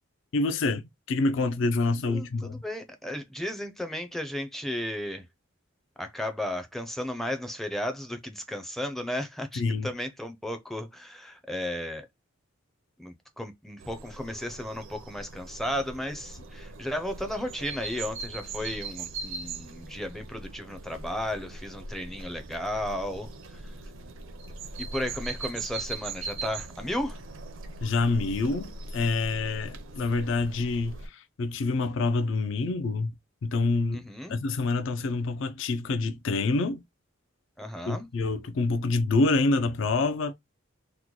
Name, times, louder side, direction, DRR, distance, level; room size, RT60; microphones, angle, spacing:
voice 1, 0.3-2.6 9.6-9.9 27.8-33.1 33.4-36.8 37.9-40.3, left 3 dB, 60° left, 0.4 m, -27 dB
voice 2, 2.0-5.3 6.0-12.1 13.0-23.7 24.8-27.2 33.9-34.4 37.6-38.1, left 1 dB, ahead, 0.4 m, -34 dB
sound 1, 13.8-31.1, right 3 dB, 65° right, 0.5 m, -40 dB
3.0 x 2.1 x 3.7 m
head